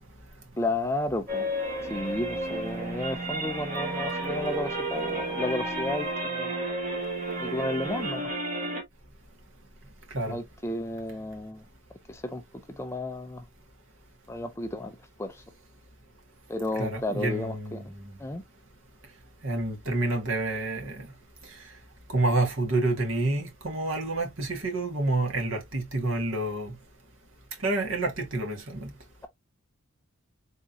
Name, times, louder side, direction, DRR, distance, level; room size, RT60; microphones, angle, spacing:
voice 1, 0.6-1.5 1.9-6.5 7.4-8.3 10.3-11.6 12.1-12.4 12.7-13.4 14.3-15.4 16.5-17.9 18.2-18.4, left 2 dB, 10° left, 0.4 m, -32 dB
sound 1, 1.3-8.8, right 1 dB, 35° right, 1.2 m, -32 dB
voice 2, 16.8-18.1 19.4-21.1 22.1-26.7 27.6-28.9, right 2 dB, 65° right, 1.7 m, -28 dB
4.3 x 3.6 x 2.5 m
head